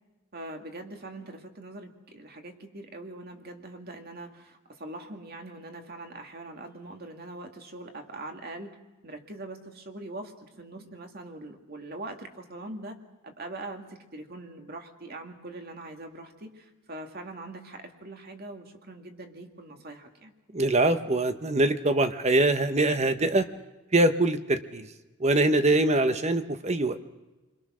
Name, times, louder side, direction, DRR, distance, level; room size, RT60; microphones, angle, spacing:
voice 1, 0.3-8.8 9.0-13.0 13.2-20.3, right 2 dB, 50° right, 4 dB, 2.2 m, -42 dB
voice 2, 20.5-23.4 23.9-24.9 25.2-27.0, right 2 dB, 35° right, 10 dB, 1.0 m, -23 dB
29.0 x 22.0 x 6.3 m, 1.1 s
head